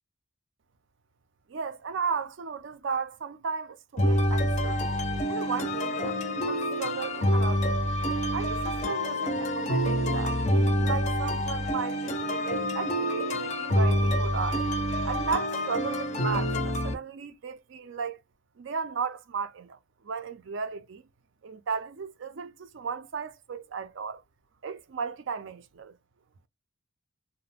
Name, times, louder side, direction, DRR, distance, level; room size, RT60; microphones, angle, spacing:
voice 1, 1.5-4.8 5.3-7.8 8.3-10.4 10.8-14.6 15.0-18.2 18.6-21.0 21.4-24.2 24.6-25.9, right 5 dB, 55° right, 0.4 m, -35 dB
sound 1, 4.0-16.9, equal, 30° left, 0.5 m, -27 dB
2.3 x 2.1 x 3.3 m
head